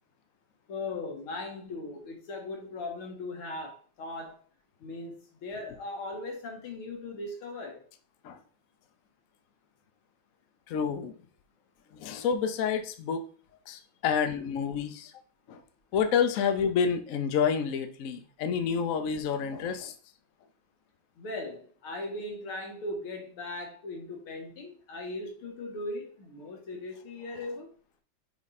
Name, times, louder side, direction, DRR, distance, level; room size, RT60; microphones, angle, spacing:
voice 1, 0.7-4.4 4.8-7.8 21.2-27.7, left 2 dB, 90° left, 2.4 m, -38 dB
voice 2, 10.7-11.1 11.9-13.2 13.7-15.1 15.5-15.6 15.9-19.9, left 7 dB, 65° left, 0.8 m, -29 dB
6.3 x 3.7 x 4.2 m
omnidirectional pair, 2.3 m